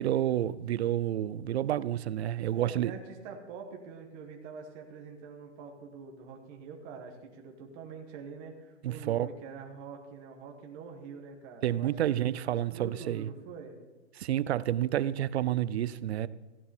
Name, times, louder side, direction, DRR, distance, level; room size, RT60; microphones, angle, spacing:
voice 1, 0.0-2.9 8.8-9.3 11.6-13.3 14.2-16.3, right 12 dB, 65° right, 0.6 m, -29 dB
voice 2, 2.4-13.8, right 6 dB, 20° right, 1.4 m, -45 dB
15.0 x 10.5 x 4.4 m
hypercardioid pair, 175°, 35 cm